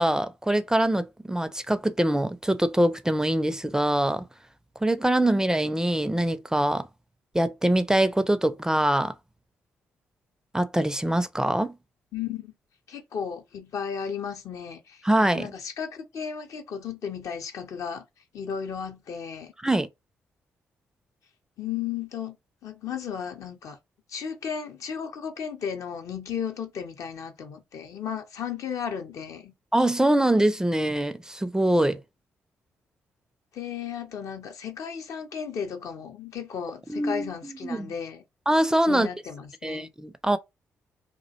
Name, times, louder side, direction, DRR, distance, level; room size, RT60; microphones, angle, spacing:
voice 1, 0.0-4.2 4.8-6.9 7.3-9.1 10.5-11.8 15.0-15.5 19.6-19.9 29.7-32.0 36.9-37.9 38.5-39.1 39.6-40.4, right 1 dB, 10° right, 0.4 m, -24 dB
voice 2, 12.1-12.5 12.9-18.0 18.3-19.5 21.6-22.4 22.6-23.8 24.1-29.5 33.5-38.2 38.9-39.9, left 7 dB, 60° left, 0.5 m, -34 dB
2.4 x 2.1 x 2.7 m
hypercardioid pair, 40°, 6 cm